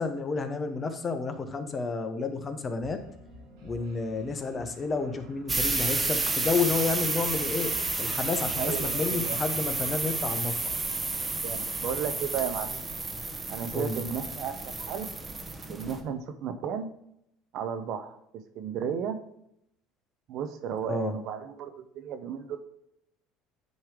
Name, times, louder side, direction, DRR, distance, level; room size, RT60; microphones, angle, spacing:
voice 1, 0.0-3.0 3.6-7.7 8.0-10.7 13.7-14.0 20.8-21.1, left 4 dB, 30° left, 7 dB, 0.9 m, -30 dB
sound 1, 2.8-11.5, right 1 dB, 85° right, 1.9 m, -49 dB
sound 2, 5.5-16.0, right 3 dB, 20° right, 1.0 m, -31 dB
voice 2, 8.6-9.4 11.4-12.8 13.5-15.1 15.7-16.9 17.5-18.2 18.5-19.2 20.3-22.6, right 7 dB, 60° right, 8 dB, 0.8 m, -34 dB
9.4 x 3.2 x 4.9 m, 0.77 s
supercardioid pair, 100°, 0 cm